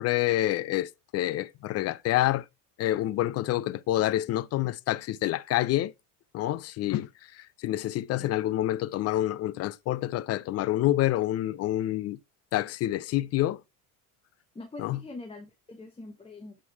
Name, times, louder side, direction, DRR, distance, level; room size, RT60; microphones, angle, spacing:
voice 1, 0.0-2.4 2.8-5.9 6.3-12.2 12.5-13.6 14.8-15.0, left 14 dB, 35° left, 0.4 m, -27 dB
voice 2, 14.5-16.6, left 2 dB, 15° left, 0.9 m, -43 dB
8.3 x 3.8 x 4.5 m
supercardioid pair, 105°, 45 cm